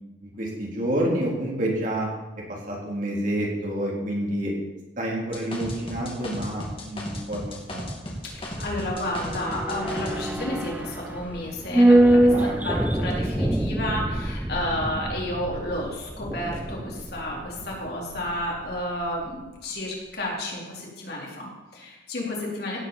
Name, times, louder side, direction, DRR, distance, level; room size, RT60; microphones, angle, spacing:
voice 1, 0.2-2.1 2.4-4.5 5.0-7.4 7.7-7.8 12.3-12.9, right 1 dB, 45° right, -2 dB, 3.6 m, -28 dB
sound 1, 5.3-10.2, equal, 30° left, 2.6 m, -35 dB
voice 2, 8.2-22.8, left 1 dB, 60° left, -3 dB, 4.0 m, -31 dB
sound 2, 8.3-18.8 19.1-19.2, right 1 dB, 10° right, 0.4 m, -24 dB
17.0 x 7.0 x 7.2 m, 1.1 s
head